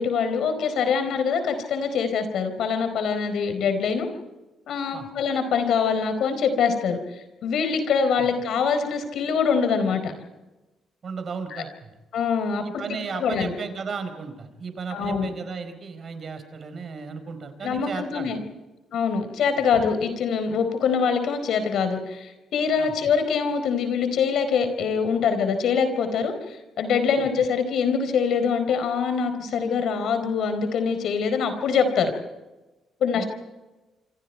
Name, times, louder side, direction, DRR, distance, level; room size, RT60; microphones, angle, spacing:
voice 1, 0.0-4.1 4.7-7.0 7.4-10.1 11.5-11.6 12.1-12.8 13.1-13.5 14.9-15.3 17.6-18.4 18.9-32.1 33.0-33.2, left 6 dB, 75° left, 8 dB, 4.4 m, -24 dB
voice 2, 11.0-11.9 12.6-18.3 22.8-23.0 27.2-27.3 33.1-33.2, right 5 dB, 50° right, 8 dB, 4.4 m, -35 dB
28.0 x 26.0 x 4.7 m, 1.1 s
cardioid pair, 90°, 0 cm